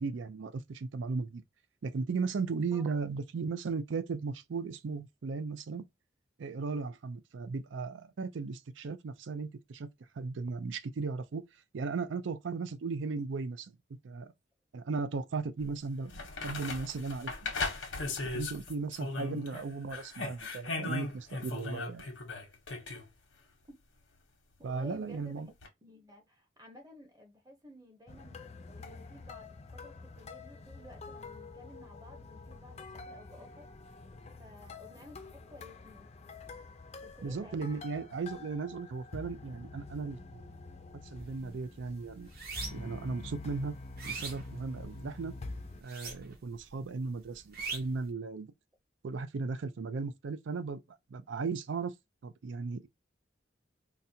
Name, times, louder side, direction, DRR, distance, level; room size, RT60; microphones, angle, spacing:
voice 1, 0.0-1.4 1.8-5.8 6.4-11.4 11.7-13.8 14.0-14.3 14.7-17.5 18.2-22.0 24.6-25.5 37.2-40.5 41.0-42.3 42.7-43.7 44.0-45.3 45.8-48.5 49.0-50.8 51.1-51.9 52.2-52.9, right 4 dB, 80° right, 0.4 m, -36 dB
sound 1, 15.6-15.7 16.1-19.6 19.9-23.1 25.6-25.7, left 3 dB, 90° left, 1.0 m, -37 dB
voice 2, 24.6-25.4 25.8-28.4 28.8-33.7 34.4-36.1 37.0-38.0, equal, 20° right, 0.8 m, -54 dB
sound 2, 28.1-45.8, left 3 dB, 35° left, 0.4 m, -47 dB
sound 3, 41.2-41.5 41.9-43.0 43.5-45.2 45.8-46.6 46.8-48.1, right 4 dB, 50° right, 1.0 m, -41 dB
4.0 x 2.2 x 2.7 m
head